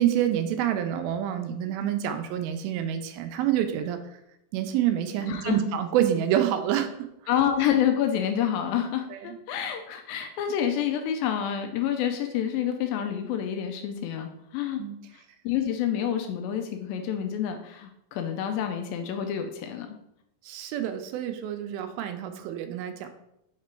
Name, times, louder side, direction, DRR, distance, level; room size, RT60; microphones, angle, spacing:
voice 1, 0.0-4.0 4.5-6.9 9.1-9.4 14.8-15.0 20.4-23.1, right 10 dB, 85° right, 7 dB, 2.3 m, -27 dB
voice 2, 7.3-14.8 15.4-20.0, left 9 dB, 80° left, 5 dB, 2.2 m, -28 dB
6.0 x 3.7 x 4.3 m, 0.81 s
omnidirectional pair, 4.4 m